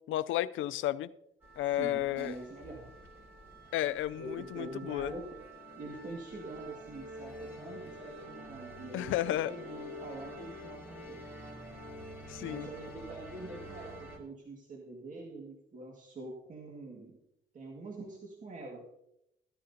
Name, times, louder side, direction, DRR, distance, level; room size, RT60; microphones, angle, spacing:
voice 1, 0.1-1.1 1.6-2.3 3.7-5.1 8.9-9.5 12.3-12.7, left 13 dB, 80° left, 0.5 m, -32 dB
sound 1, 1.4-14.2, equal, 10° right, 4.3 m, -47 dB
voice 2, 1.7-2.9 4.1-5.5 5.8-11.2 12.4-17.2 17.5-18.9, right 2 dB, 40° right, 2.0 m, -45 dB
14.5 x 10.0 x 2.8 m
cardioid pair, 90°, 20 cm